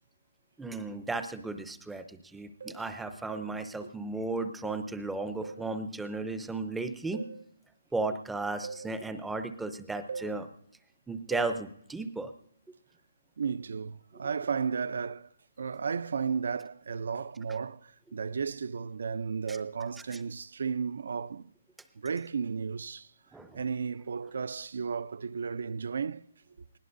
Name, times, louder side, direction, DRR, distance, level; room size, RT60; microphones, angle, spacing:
voice 1, 0.6-7.2 7.9-10.5 11.1-12.3 19.5-19.6 20.1-20.2 23.3-23.6, right 3 dB, 5° right, 0.5 m, -35 dB
sound 1, 2.6-2.9 3.3-3.6 4.6-4.9 5.4-5.7 7.1-7.4 8.6-8.9 10.1-10.4 11.3-11.6, right 5 dB, 85° right, 2.5 m, -41 dB
voice 2, 13.4-15.3 15.6-21.5 22.0-23.1 23.5-26.3, right 6 dB, 65° right, 0.4 m, -34 dB
20.5 x 16.5 x 2.6 m
hypercardioid pair, 175°, 0 cm